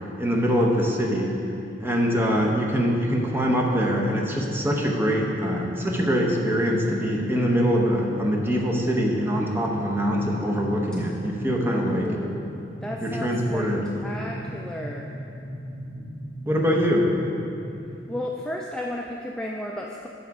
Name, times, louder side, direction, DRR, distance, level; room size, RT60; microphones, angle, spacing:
voice 1, 0.2-1.3 1.8-12.0 13.0-13.9 16.5-17.1, equal, 15° right, -1 dB, 0.8 m, -23 dB
sound 1, 2.2-17.8, equal, 70° left, 1.5 m, -37 dB
voice 2, 11.6-13.7 14.0-15.1 18.1-20.1, left 1 dB, 5° left, -1 dB, 0.3 m, -33 dB
7.1 x 6.4 x 4.7 m, 2.7 s
head